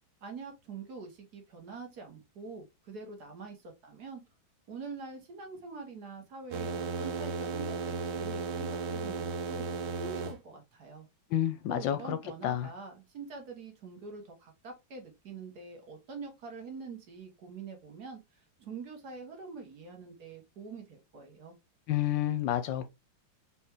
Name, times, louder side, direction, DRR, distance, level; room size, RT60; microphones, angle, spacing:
voice 1, 0.2-4.2 4.7-9.6 10.0-11.1 11.7-21.5, right 4 dB, 55° right, 1.6 m, -45 dB
sound 1, 6.5-10.4, right 4 dB, 90° right, 1.6 m, -35 dB
voice 2, 11.3-12.2 12.4-12.7 21.9-22.9, left 12 dB, 75° left, 1.2 m, -29 dB
4.3 x 3.5 x 3.0 m
omnidirectional pair, 2.2 m